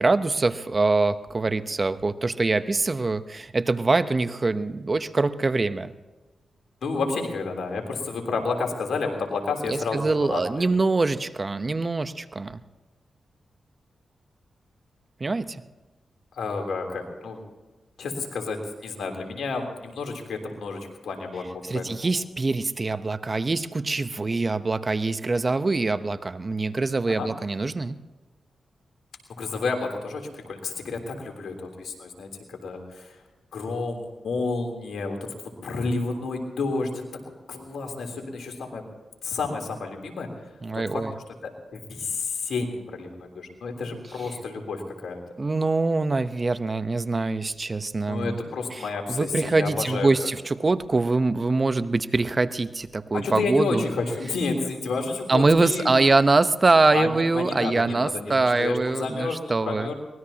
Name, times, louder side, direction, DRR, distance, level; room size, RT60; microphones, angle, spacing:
voice 1, 0.0-5.9 9.6-12.6 15.2-15.6 21.6-28.0 40.6-41.1 45.4-48.4 48.7-53.8 55.3-59.9, right 3 dB, 40° right, 12 dB, 0.9 m, -24 dB
voice 2, 6.8-10.7 16.3-17.4 18.0-21.8 27.1-27.3 29.4-33.1 33.5-35.3 35.6-36.9 37.5-38.8 39.2-40.3 40.7-40.8 41.4-43.1 43.4-45.2 48.1-50.3 53.1-56.0 56.9-59.9, left 3 dB, 80° left, 3 dB, 3.4 m, -30 dB
23.5 x 20.0 x 2.9 m, 1.2 s
supercardioid pair, 45°, 0 cm